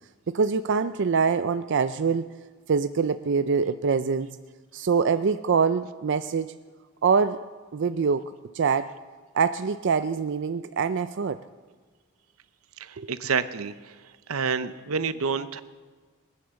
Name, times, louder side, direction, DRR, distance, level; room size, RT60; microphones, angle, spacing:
voice 1, 0.3-2.3 2.7-4.4 4.7-6.5 7.0-7.4 7.7-8.2 8.5-8.9 9.3-11.4 13.0-13.1, right 5 dB, 60° right, 11 dB, 0.4 m, -24 dB
voice 2, 12.8-13.9 14.3-15.6, right 5 dB, 85° right, 13 dB, 0.8 m, -28 dB
21.0 x 9.6 x 7.0 m, 1.5 s
head